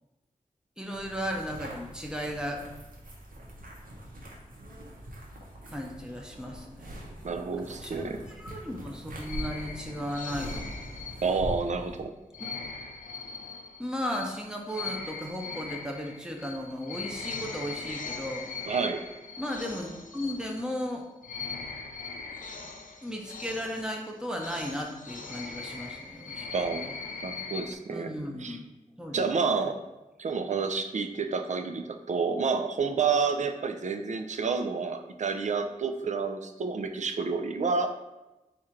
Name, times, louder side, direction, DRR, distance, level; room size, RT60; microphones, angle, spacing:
voice 1, 0.8-2.6 5.7-7.1 7.5-10.8 12.4-12.5 13.8-18.4 19.4-21.1 23.0-26.9 27.9-28.6 29.0-29.7, equal, 5° right, 1 dB, 0.7 m, -36 dB
sound 1, 0.9-12.0, equal, 90° right, 0.9 m, -42 dB
voice 2, 7.2-8.2 11.2-12.1 18.6-19.0 26.5-26.9 27.2-28.1 28.4-28.6 29.1-29.8 30.2-37.9, right 5 dB, 60° right, 6 dB, 0.4 m, -29 dB
sound 2, 9.2-11.7 12.3-20.9 21.2-27.7, left 4 dB, 70° left, 0.5 m, -40 dB
4.2 x 2.5 x 4.4 m, 1.0 s
wide cardioid pair, 85°, 14 cm